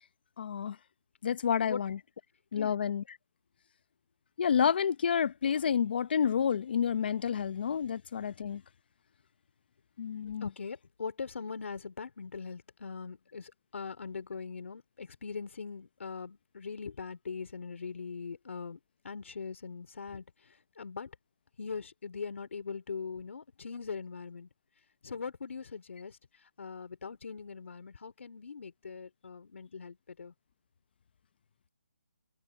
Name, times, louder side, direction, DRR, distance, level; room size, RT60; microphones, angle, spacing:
voice 1, 0.4-0.8 1.2-2.0 2.5-3.0 4.4-8.6 10.0-10.5, left 7 dB, 40° left, 0.8 m, -29 dB
voice 2, 10.4-18.8 19.0-21.1 21.6-24.5 25.0-30.3, left 5 dB, 60° left, 4.1 m, -41 dB
hypercardioid pair, 165°, 8 cm